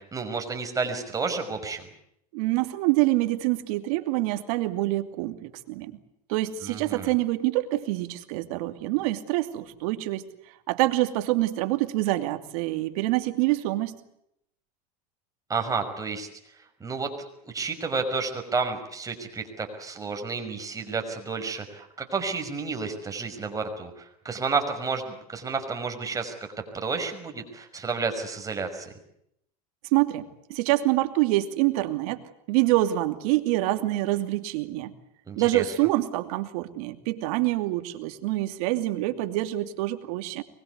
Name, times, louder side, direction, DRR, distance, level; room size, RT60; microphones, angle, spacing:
voice 1, 0.0-1.8 6.6-7.1 15.5-16.3 16.8-17.1 17.4-26.3 26.7-28.9 35.3-35.6, right 4 dB, 15° right, 5 dB, 5.6 m, -31 dB
voice 2, 2.3-5.9 6.3-10.2 10.7-14.0 29.9-32.2 32.5-34.9 35.4-40.4, right 17 dB, 70° right, 8 dB, 2.7 m, -26 dB
24.5 x 21.5 x 8.2 m, 0.76 s
supercardioid pair, 115°, 19 cm